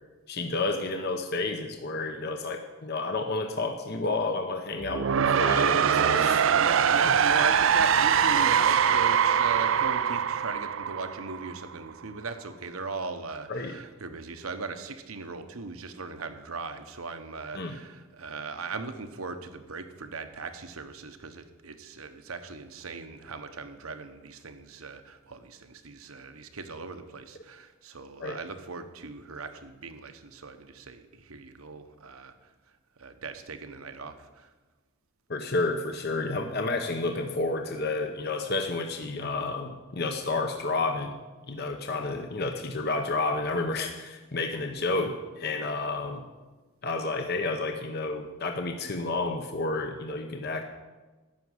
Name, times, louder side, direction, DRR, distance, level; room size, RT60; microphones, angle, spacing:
voice 1, 0.3-6.5 7.0-7.1 13.5-13.7 17.5-17.8 28.2-28.4 35.3-41.1 41.5-46.2 46.8-50.6, left 3 dB, 50° left, 5 dB, 0.9 m, -30 dB
sound 1, 4.8-11.7, right 7 dB, 60° right, 0.4 m, -23 dB
voice 2, 6.4-32.5 33.0-34.5, right 4 dB, 80° right, 8 dB, 1.1 m, -38 dB
13.5 x 6.1 x 9.6 m, 1.2 s
head